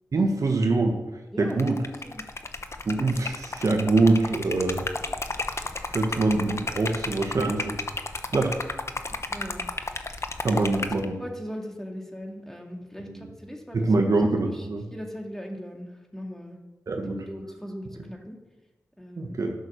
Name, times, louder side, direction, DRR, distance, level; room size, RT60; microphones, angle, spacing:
voice 1, 0.1-1.0 1.4-1.8 2.8-4.8 5.9-7.7 8.3-8.5 10.4-11.1 13.1-13.3 13.7-14.8 16.9-17.2 19.2-19.5, right 3 dB, 65° right, 3 dB, 1.5 m, -24 dB
voice 2, 1.3-1.8 2.0-2.2 9.3-10.3 10.8-14.1 14.5-16.6 17.0-18.4 19.0-19.4, equal, 5° left, 1 dB, 2.5 m, -39 dB
Liquid, 1.5-11.0, left 3 dB, 50° left, 1.0 m, -33 dB
12.0 x 6.3 x 6.6 m, 1.1 s
cardioid pair, 40°, 6 cm